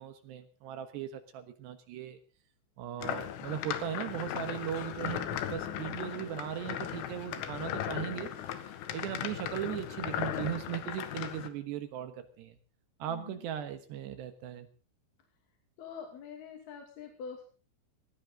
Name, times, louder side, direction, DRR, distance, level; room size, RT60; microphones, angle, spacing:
voice 1, 0.0-2.2 2.8-12.6 13.0-14.7, right 10 dB, 70° right, 10 dB, 3.2 m, -38 dB
sound 1, 3.0-11.5, left 11 dB, 85° left, 4.0 m, -37 dB
voice 2, 13.1-13.4 15.8-17.4, left 6 dB, 60° left, 3 dB, 4.2 m, -45 dB
19.0 x 18.5 x 3.9 m, 0.37 s
omnidirectional pair, 5.5 m